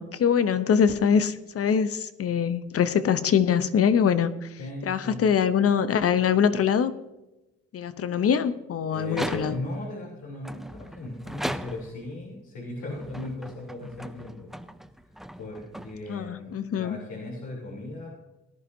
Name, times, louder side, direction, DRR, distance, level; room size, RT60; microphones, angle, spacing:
voice 1, 0.0-4.5 4.8-6.9 7.7-9.6 16.1-17.0, left 7 dB, 50° left, 13 dB, 0.8 m, -23 dB
voice 2, 4.6-5.2 8.9-14.5 15.4-18.1, left 2 dB, 80° left, -6 dB, 3.4 m, -37 dB
sound 1, 9.0-9.8 10.4-12.1 12.8-16.3, equal, ahead, 0.5 m, -38 dB
18.5 x 11.0 x 2.7 m, 1.0 s
cardioid pair, 90°, 30 cm